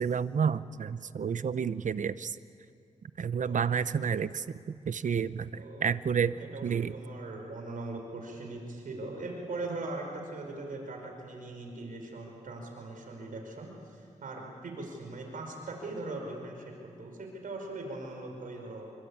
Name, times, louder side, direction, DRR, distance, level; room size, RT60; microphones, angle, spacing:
voice 1, 0.0-2.4 3.2-4.4 4.9-6.4 6.6-6.9, right 7 dB, 70° right, 15 dB, 0.8 m, -30 dB
voice 2, 5.5-5.9 6.3-16.6 17.0-18.9, right 2 dB, 90° right, 2 dB, 5.2 m, -40 dB
27.0 x 23.5 x 8.8 m, 2.4 s
cardioid pair, 70°, 14 cm